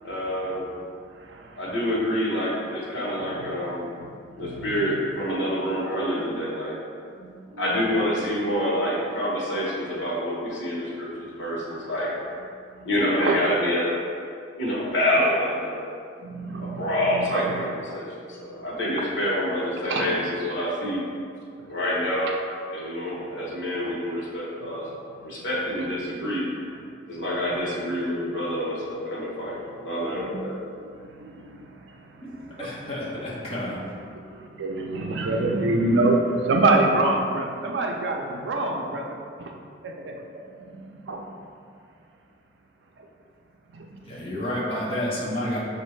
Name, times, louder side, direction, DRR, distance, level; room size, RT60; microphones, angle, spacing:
voice 1, 0.0-0.6 1.6-3.9 4.4-6.7 7.6-12.1 12.8-14.0 14.6-15.8 16.6-18.1 18.4-21.0 21.7-22.3 22.7-24.9 25.2-26.4 27.1-30.6, equal, 80° left, -5 dB, 1.1 m, -27 dB
voice 2, 1.2-1.6 3.4-3.5 4.2-4.7 7.2-7.6 12.8-12.9 13.2-13.4 16.2-17.5 19.8-20.1 21.6-21.8 23.1-23.3 23.8-24.0 25.1-25.2 30.1-30.4 30.8-32.7 34.1-39.5 39.8-41.3 43.0-43.1 43.7-44.0, right 2 dB, 75° right, 2 dB, 0.5 m, -27 dB
voice 3, 32.6-33.8 44.0-45.6, left 1 dB, 30° left, -7 dB, 1.0 m, -30 dB
5.6 x 2.5 x 3.1 m, 2.3 s
head